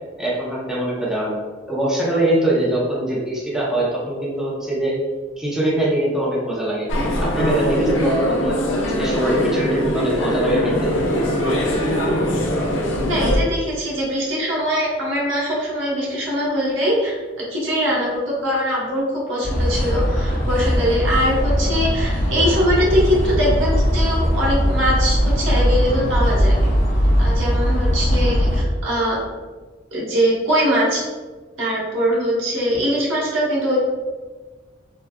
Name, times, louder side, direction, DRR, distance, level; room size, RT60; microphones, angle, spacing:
voice 1, 0.2-1.4 1.7-4.9 5.4-6.9 7.2-8.5 8.8-10.9, right 1 dB, 5° right, -7 dB, 0.6 m, -22 dB
sound 1, 6.9-13.4, equal, 75° left, 0.5 m, -21 dB
voice 2, 13.1-17.2 17.5-26.5 27.2-29.2 29.9-31.0 31.6-33.8, equal, 85° right, -5 dB, 1.0 m, -22 dB
sound 2, 19.4-28.6, equal, 45° left, 1.3 m, -19 dB
3.5 x 2.3 x 2.2 m, 1.3 s
head